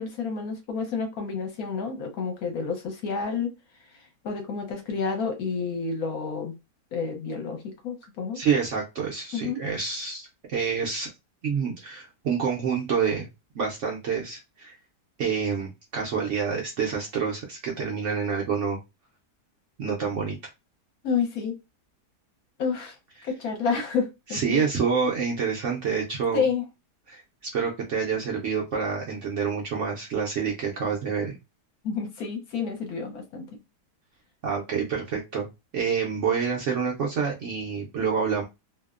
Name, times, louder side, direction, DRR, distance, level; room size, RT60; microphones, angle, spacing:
voice 1, 0.0-3.5 4.2-6.5 6.9-8.4 9.3-9.6 21.0-21.6 22.6-23.0 23.2-24.6 26.3-26.6 31.8-33.5, left 5 dB, 70° left, 4 dB, 1.1 m, -29 dB
voice 2, 8.3-11.1 11.4-13.3 13.5-14.8 15.2-18.8 19.8-20.4 24.3-26.4 27.1-27.2 27.5-31.4 34.4-35.5 35.7-38.4, right 6 dB, 65° right, -2 dB, 0.8 m, -27 dB
2.7 x 2.0 x 2.3 m, 0.24 s
omnidirectional pair, 1.7 m